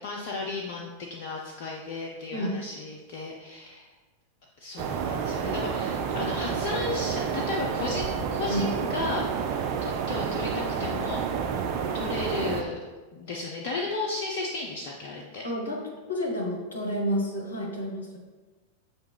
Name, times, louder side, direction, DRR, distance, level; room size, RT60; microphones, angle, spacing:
voice 1, 0.0-3.9 4.6-11.2 11.9-12.8 13.1-15.5, left 3 dB, 50° left, -1 dB, 0.4 m, -34 dB
sound 1, 4.8-12.6, right 6 dB, 45° right, 0.4 m, -29 dB
voice 2, 15.4-18.2, equal, 70° left, -1 dB, 0.9 m, -30 dB
6.2 x 2.3 x 3.2 m, 1.3 s
figure-of-eight pair, 90°, 0 cm